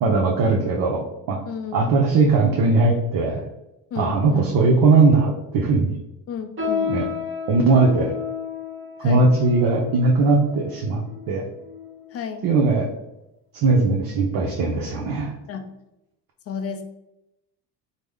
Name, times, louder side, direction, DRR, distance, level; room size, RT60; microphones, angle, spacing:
voice 1, 0.0-1.4 1.7-3.4 4.0-5.9 6.9-7.1 7.5-8.1 9.0-11.4 12.4-12.9 13.5-15.3, right 3 dB, 45° right, 0 dB, 0.6 m, -19 dB
voice 2, 1.4-1.9 3.9-4.5 6.3-7.0 9.0-9.3 12.1-12.4 15.5-15.6 16.5-16.8, left 7 dB, 30° left, 6 dB, 0.4 m, -32 dB
sound 1, 6.6-12.2 12.9-13.1 13.8-14.1 14.5-14.6 15.4-15.5, left 6 dB, 25° right, 1.0 m, -32 dB
3.1 x 2.1 x 3.4 m, 0.90 s
hypercardioid pair, 70°, 50 cm